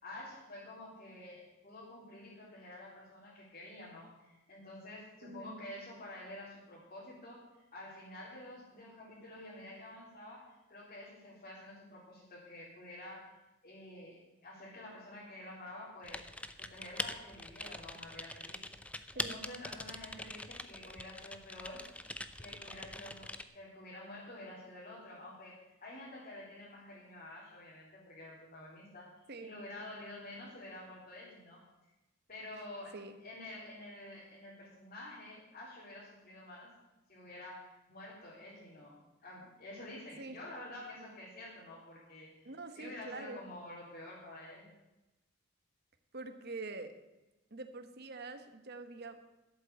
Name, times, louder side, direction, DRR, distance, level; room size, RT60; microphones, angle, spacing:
voice 1, 0.0-13.3 13.6-16.3 16.6-18.6 19.1-21.9 22.3-29.1 29.4-31.6 32.3-33.0 33.2-36.7 37.1-44.7, left 1 dB, 45° left, -8 dB, 3.9 m, -49 dB
voice 2, 5.2-5.7 19.1-19.5 29.3-29.6 32.9-33.2 40.2-40.4 42.4-43.4 46.1-46.9 47.5-49.2, right 3 dB, 55° right, 8 dB, 1.3 m, -45 dB
Typing, 16.0-23.4, left 2 dB, 5° left, 0.6 m, -43 dB
12.5 x 8.1 x 8.3 m, 1.0 s
head